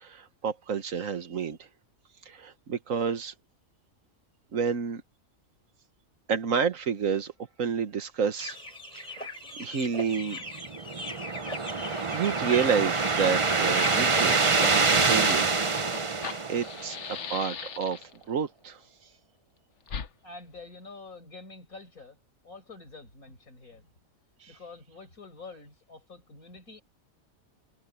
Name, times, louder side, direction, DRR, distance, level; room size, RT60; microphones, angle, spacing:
voice 1, 0.0-1.7 2.3-3.3 4.5-5.0 6.3-7.3 7.6-8.6 9.0-9.3 9.6-10.4 12.1-15.5 16.1-18.8 24.4-24.5, right 6 dB, 70° right, 1.7 m, -30 dB
sound 1, 8.4-15.0, left 1 dB, 30° left, 5.9 m, -38 dB
sound 2, 10.6-17.1, right 4 dB, 25° right, 0.8 m, -26 dB
Fire, 13.4-13.5 13.7-18.2 19.9-20.1, left 6 dB, 60° left, 1.4 m, -39 dB
voice 2, 20.2-22.2 22.4-23.9 24.5-26.8, left 3 dB, 90° left, 6.5 m, -47 dB
omnidirectional pair, 1.4 m